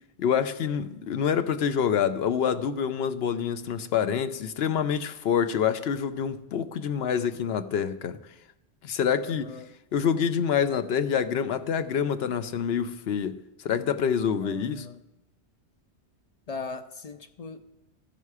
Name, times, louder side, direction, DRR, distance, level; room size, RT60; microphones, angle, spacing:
voice 1, 0.2-8.2 8.8-9.5 9.9-14.9, left 7 dB, 70° left, 0.8 m, -27 dB
voice 2, 9.3-9.7 14.4-15.0 16.5-17.7, left 4 dB, 50° left, 0.5 m, -39 dB
14.5 x 5.6 x 4.8 m
omnidirectional pair, 1.1 m